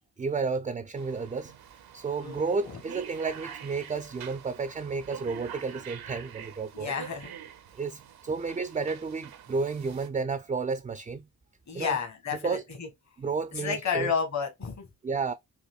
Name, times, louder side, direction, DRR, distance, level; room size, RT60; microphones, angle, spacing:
voice 1, 0.2-1.5 1.9-6.9 7.7-11.2 11.7-12.0 12.4-12.6 13.2-14.1 15.0-15.3, right 4 dB, 20° right, 0.4 m, -31 dB
sound 1, 1.0-10.1, right 9 dB, 80° right, 0.7 m, -46 dB
voice 2, 2.2-2.8 6.7-7.3 11.7-12.9 13.5-14.9, left 6 dB, 50° left, 1.3 m, -31 dB
4.2 x 2.6 x 2.3 m
cardioid pair, 60°, 36 cm